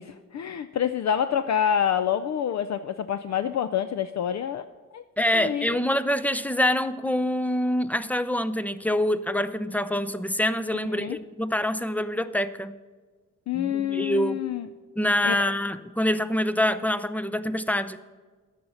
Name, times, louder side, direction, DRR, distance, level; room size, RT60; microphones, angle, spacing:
voice 1, 0.0-4.6 4.9-5.0 5.3-5.8 10.9-11.2 13.5-14.7 15.2-15.4, left 9 dB, 50° left, 11 dB, 0.5 m, -27 dB
voice 2, 5.2-12.7 13.5-14.4 15.0-18.0, left 1 dB, 5° left, 13 dB, 0.5 m, -25 dB
12.0 x 8.6 x 5.6 m, 1.4 s
cardioid pair, 85°, 34 cm